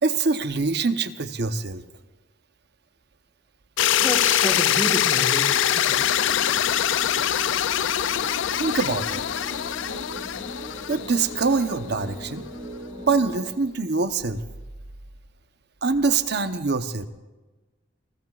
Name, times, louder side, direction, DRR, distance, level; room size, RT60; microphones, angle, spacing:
voice 1, 0.0-1.8 8.5-9.2 10.9-12.4 13.1-14.4 15.8-17.1, right 4 dB, 60° right, 9 dB, 0.9 m, -24 dB
sound 1, 3.8-11.8, left 10 dB, 80° left, 0.4 m, -23 dB
voice 2, 4.0-6.3, left 1 dB, 15° left, 2 dB, 1.3 m, -30 dB
sound 2, 5.8-13.3, equal, 25° right, 4.1 m, -40 dB
29.0 x 20.0 x 2.4 m, 1.2 s
head